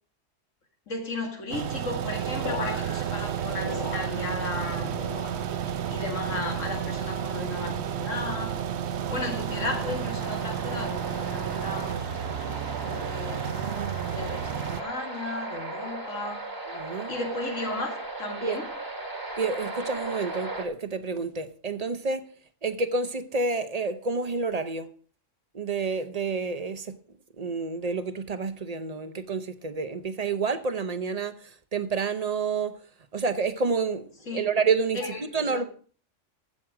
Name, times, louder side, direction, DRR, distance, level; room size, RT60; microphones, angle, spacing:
voice 1, 0.9-5.0 5.9-8.6 9.1-13.5 14.1-16.5 17.1-18.7 34.3-34.5 34.9-35.7, left 2 dB, 85° left, 2.4 m, -35 dB
sound 1, 1.5-14.8, right 9 dB, 65° right, 0.9 m, -31 dB
sound 2, 2.4-4.7 4.9-5.8 6.3-7.0 7.6-8.1 8.9-9.3 10.3-10.6, left 5 dB, 35° left, 0.6 m, -41 dB
sound 3, 9.5-20.6, right 2 dB, 15° right, 1.5 m, -37 dB
voice 2, 16.7-17.1 18.4-18.6 19.4-22.2 22.6-24.9 25.5-27.0 27.4-32.8 33.1-35.0 35.3-35.6, right 4 dB, 35° right, 0.8 m, -29 dB
15.5 x 6.4 x 4.9 m
omnidirectional pair, 1.3 m